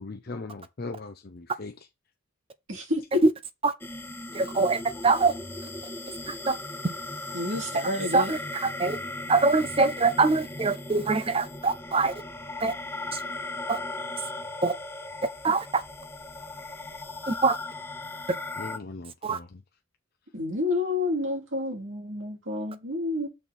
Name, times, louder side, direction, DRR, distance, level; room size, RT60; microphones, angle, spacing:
voice 1, 0.0-1.8 18.6-19.6, left 3 dB, 45° left, 0.6 m, -39 dB
voice 2, 2.7-3.2 7.3-8.3 20.3-23.3, left 2 dB, 60° right, 3.1 m, -29 dB
sound 1, 3.8-18.8, left 2 dB, 10° left, 0.7 m, -37 dB
voice 3, 4.3-5.3 6.3-6.5 8.1-9.0 9.3-12.1 12.6-12.7 13.1-13.2 13.7-13.8 14.6-14.7 15.4-15.8 17.3-17.6 19.2-19.4, right 3 dB, 25° right, 0.5 m, -23 dB
6.2 x 4.4 x 5.3 m
head